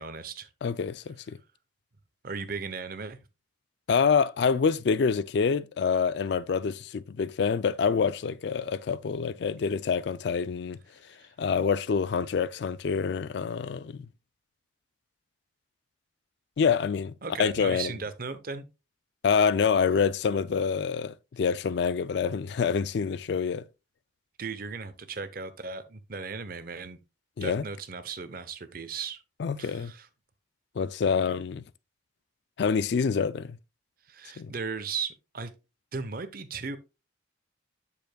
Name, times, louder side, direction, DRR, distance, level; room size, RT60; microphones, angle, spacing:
voice 1, 0.0-0.5 2.2-3.2 11.2-11.3 17.2-18.7 24.4-27.0 27.4-29.2 29.6-30.1 34.1-35.5 35.9-36.8, right 5 dB, 45° right, 0.7 m, -36 dB
voice 2, 0.6-1.4 3.9-10.8 11.4-14.1 16.6-17.1 17.4-17.9 19.2-23.6 27.4-27.6 29.4-29.9 30.8-31.6 32.6-33.6 34.4-34.5, left 6 dB, 55° left, 0.3 m, -26 dB
7.8 x 6.8 x 2.2 m
head